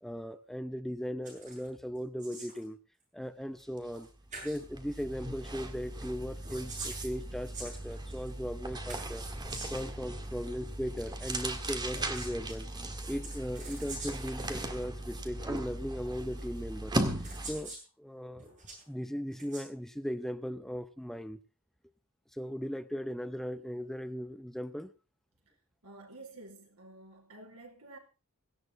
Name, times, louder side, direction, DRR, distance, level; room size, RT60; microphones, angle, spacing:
voice 1, 0.0-2.8 3.1-4.1 4.4-9.2 9.7-12.7 13.1-16.9 17.4-18.5 18.9-21.4 22.3-24.9, equal, ahead, 0.7 m, -38 dB
sound 1, 1.2-1.7 2.0-2.7 3.9-4.0 4.3-4.6 6.4-8.3 8.9-9.9 11.9-12.6 13.2-14.4 15.4-15.5 16.5-16.6 17.2-17.9 18.4-18.8 19.3-19.7, right 3 dB, 35° right, 7.7 m, -45 dB
sound 2, 3.8-4.0 4.3-17.7, right 1 dB, 20° right, 1.9 m, -38 dB
voice 2, 25.8-28.0, right 2 dB, 90° right, 4.8 m, -50 dB
17.5 x 16.0 x 3.7 m
head